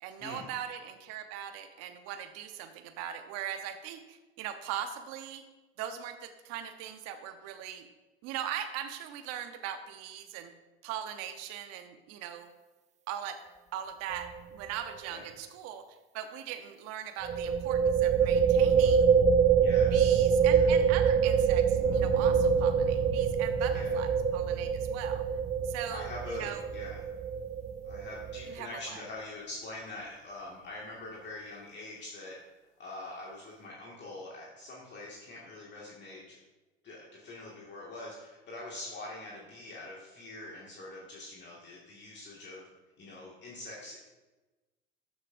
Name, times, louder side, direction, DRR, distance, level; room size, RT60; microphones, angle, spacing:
voice 1, 0.0-5.4 5.8-7.9 8.2-10.5 10.8-12.5 13.1-13.4 13.7-15.8 16.1-19.1 19.9-25.2 25.6-26.6 28.5-29.0, right 10 dB, 55° right, 8 dB, 0.9 m, -40 dB
sound 1, 14.1-14.4 14.6-14.7 17.2-28.6, right 7 dB, 25° right, 0.4 m, -25 dB
voice 2, 19.5-20.8 23.7-24.0 25.9-27.1 27.8-32.4 32.8-36.4 36.8-42.7 43.0-44.1, left 2 dB, 35° left, -4 dB, 1.9 m, -44 dB
sound 2, 21.7-28.1 28.5-29.1, left 9 dB, 65° left, 0.8 m, -43 dB
13.5 x 6.5 x 2.6 m, 1.1 s
hypercardioid pair, 75°, 31 cm